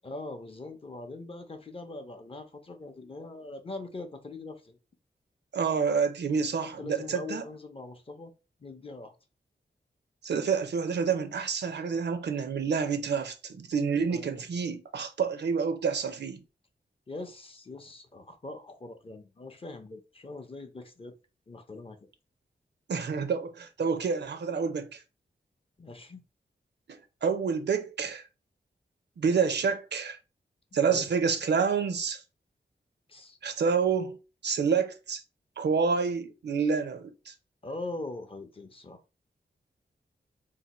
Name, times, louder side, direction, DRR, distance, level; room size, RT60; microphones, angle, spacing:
voice 1, 0.0-4.8 6.6-8.3 8.6-9.1 14.1-14.4 17.1-21.1 21.5-22.0 25.8-26.2 30.9-31.1 33.1-33.4 37.6-39.0, left 2 dB, 30° left, 0.6 m, -42 dB
voice 2, 5.5-7.4 10.2-16.4 22.9-25.0 26.9-28.2 29.2-30.2 30.7-32.2 33.4-34.2 34.4-35.2 35.6-37.3, right 5 dB, 75° right, 0.5 m, -28 dB
2.7 x 2.1 x 4.1 m
wide cardioid pair, 110°, 18 cm